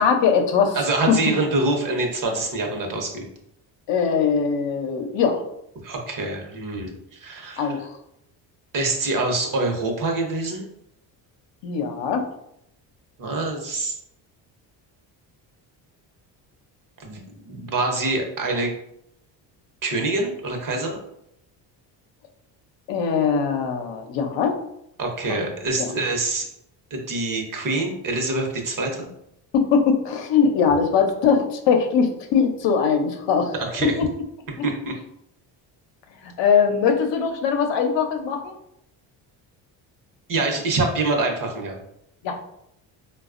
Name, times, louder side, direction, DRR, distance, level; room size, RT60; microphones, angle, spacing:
voice 1, 0.0-1.2 3.9-5.4 7.6-7.9 11.6-12.3 22.9-24.6 25.3-25.5 25.8-25.9 29.5-33.5 33.8-34.1 36.2-38.6 42.2-42.4, left 6 dB, 70° left, 4 dB, 0.7 m, -21 dB
voice 2, 0.7-3.3 5.8-7.8 8.7-10.6 13.2-14.0 17.0-18.7 19.8-21.0 25.0-26.5 26.9-29.1 33.5-33.9 34.6-34.9 40.3-41.8, right 2 dB, 45° right, 2 dB, 0.9 m, -25 dB
4.0 x 2.3 x 2.4 m, 0.77 s
cardioid pair, 85°, 45 cm